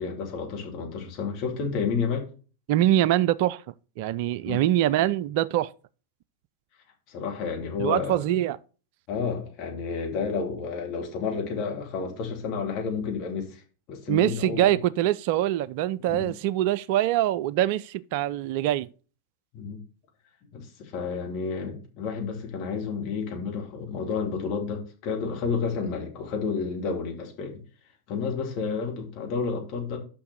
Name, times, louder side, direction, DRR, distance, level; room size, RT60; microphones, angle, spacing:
voice 1, 0.0-2.2 4.4-4.6 7.1-8.2 9.1-13.6 13.9-14.7 16.0-16.3 19.5-19.8 20.5-27.6 28.1-30.0, left 5 dB, 40° left, 2.9 m, -30 dB
voice 2, 2.7-3.6 4.0-5.7 7.8-8.6 14.1-18.9, right 13 dB, 45° right, 0.3 m, -24 dB
6.6 x 5.9 x 6.8 m
figure-of-eight pair, 90°, 0 cm